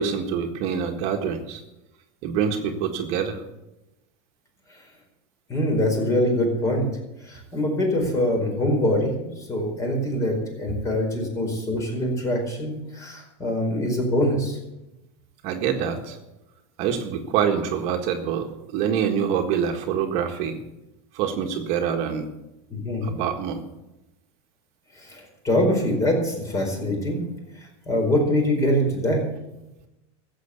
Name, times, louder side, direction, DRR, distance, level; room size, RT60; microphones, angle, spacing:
voice 1, 0.0-1.6 2.2-3.4 15.4-16.2 16.8-18.5 18.7-20.6 21.1-22.3 23.0-23.6, right 7 dB, 45° right, 4 dB, 1.6 m, -25 dB
voice 2, 5.5-6.9 7.2-14.6 22.7-23.1 24.9-27.2 27.8-29.2, left 1 dB, 20° left, 1 dB, 4.6 m, -24 dB
14.5 x 7.9 x 8.3 m, 0.95 s
supercardioid pair, 145°, 14 cm